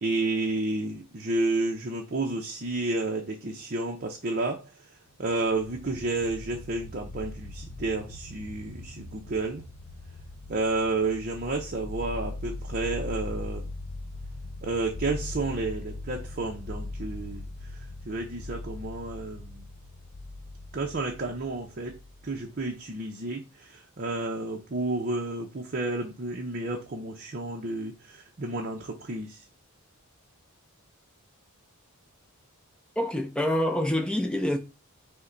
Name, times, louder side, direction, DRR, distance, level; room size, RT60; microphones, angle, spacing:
voice 1, 0.0-4.6 5.2-9.7 10.5-13.7 14.6-17.5 18.1-19.7 20.7-21.9 22.2-29.4, right 2 dB, 40° right, 0.6 m, -31 dB
sound 1, 5.4-22.6, left 2 dB, 70° left, 0.7 m, -40 dB
voice 2, 33.0-34.6, left 1 dB, 5° left, 0.5 m, -26 dB
5.6 x 2.2 x 3.8 m
head